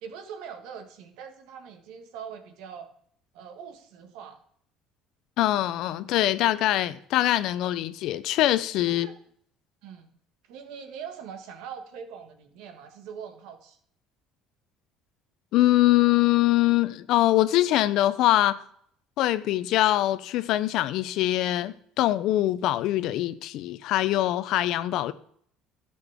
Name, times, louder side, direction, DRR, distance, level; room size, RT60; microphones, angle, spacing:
voice 1, 0.0-2.9 3.3-4.4 8.9-9.2 9.8-10.1 10.5-13.8, right 7 dB, 75° right, 1.5 m, -42 dB
voice 2, 5.4-9.1 15.5-18.6 19.2-25.1, left 14 dB, 70° left, 0.6 m, -23 dB
12.5 x 7.8 x 3.6 m
supercardioid pair, 95°, 0 cm